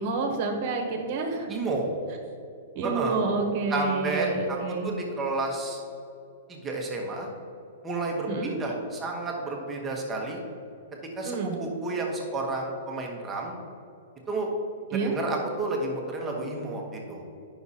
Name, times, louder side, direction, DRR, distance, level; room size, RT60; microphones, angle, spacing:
voice 1, 0.0-1.5 2.7-4.9 8.3-8.5 11.2-11.6 14.9-15.1, right 4 dB, 40° right, 3 dB, 1.3 m, -29 dB
voice 2, 1.5-1.9 2.8-3.3 3.7-4.6 4.8-5.8 6.5-7.3 7.8-10.4 11.2-13.5 14.3-14.5 14.9-17.2, right 2 dB, 15° right, 0 dB, 1.2 m, -31 dB
9.2 x 6.0 x 4.2 m, 2.6 s
hypercardioid pair, 160°, 0 cm